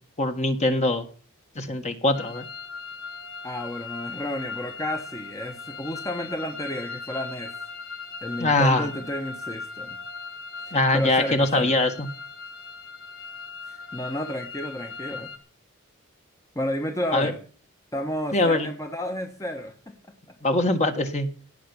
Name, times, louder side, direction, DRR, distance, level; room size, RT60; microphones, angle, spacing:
voice 1, 0.2-1.0 1.5-2.5 8.4-8.9 10.7-12.1 17.1-17.3 18.3-18.7 20.4-21.3, left 2 dB, 30° left, 7 dB, 1.7 m, -22 dB
sound 1, 2.1-15.4, left 4 dB, 70° left, 2.3 m, -38 dB
voice 2, 3.4-7.5 8.2-9.9 10.6-11.9 13.6-15.3 16.5-17.4 17.9-19.7, left 1 dB, 15° left, 5 dB, 1.2 m, -31 dB
17.5 x 5.9 x 9.8 m, 0.43 s
head